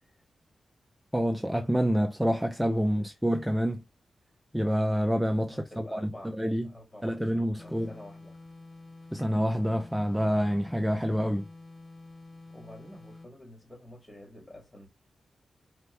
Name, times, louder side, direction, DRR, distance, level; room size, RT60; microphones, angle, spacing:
voice 1, 1.1-3.8 4.5-6.7 7.0-7.9 9.1-11.4, equal, 5° right, 0.5 m, -27 dB
voice 2, 2.9-3.4 5.5-6.4 6.6-7.3 7.6-8.5 12.5-14.9, left 1 dB, 20° left, 2.3 m, -49 dB
sound 1, 7.6-13.4, left 2 dB, 35° left, 1.2 m, -49 dB
4.4 x 2.7 x 3.2 m
cardioid pair, 85°, 0 cm